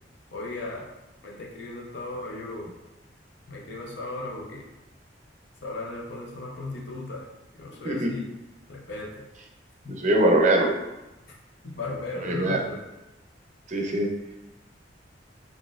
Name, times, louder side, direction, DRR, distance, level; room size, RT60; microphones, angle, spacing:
voice 1, 0.3-0.9 1.2-2.7 3.5-4.6 5.6-7.3 7.6-8.3 8.7-9.3 9.8-9.9 11.3-11.4 11.6-12.8, left 2 dB, 70° left, -2 dB, 0.7 m, -36 dB
voice 2, 10.0-10.7 12.2-12.6 13.7-14.1, right 1 dB, 40° right, 2 dB, 0.5 m, -22 dB
4.1 x 2.9 x 2.4 m, 0.99 s
head